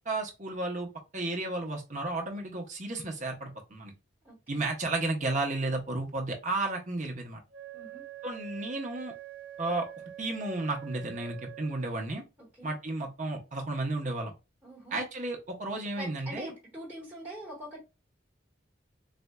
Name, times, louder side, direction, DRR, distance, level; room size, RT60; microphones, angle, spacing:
voice 1, 0.1-3.9 4.5-7.4 8.2-9.1 9.6-9.9 10.2-12.2 12.6-14.3 14.9-16.5, right 2 dB, 40° right, 2 dB, 0.8 m, -33 dB
voice 2, 4.2-4.7 7.7-8.0 12.4-12.7 14.6-15.0 15.9-17.8, right 1 dB, 10° right, -6 dB, 1.4 m, -44 dB
Wind instrument woodwind instrument, 7.5-12.1, right 12 dB, 70° right, 0.5 m, -45 dB
4.2 x 2.5 x 2.2 m, 0.27 s
head